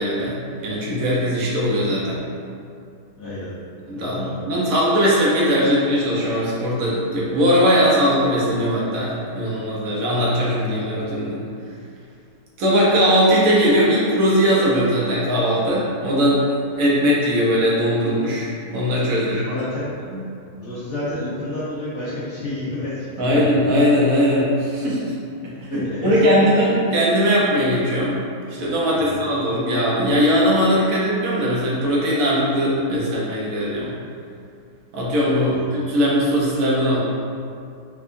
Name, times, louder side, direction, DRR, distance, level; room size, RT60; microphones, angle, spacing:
voice 1, 0.0-2.2 3.9-11.4 12.6-19.5 20.1-20.2 23.2-25.2 25.4-28.2 28.6-34.0 34.9-37.0, equal, 65° right, -6 dB, 1.1 m, -20 dB
voice 2, 3.2-3.6 3.9-4.5 19.2-19.9 20.6-23.6 25.6-26.6 28.9-29.2 35.5-35.7, left 2 dB, 55° left, -11 dB, 0.9 m, -30 dB
4.4 x 2.3 x 2.5 m, 2.4 s
omnidirectional pair, 1.7 m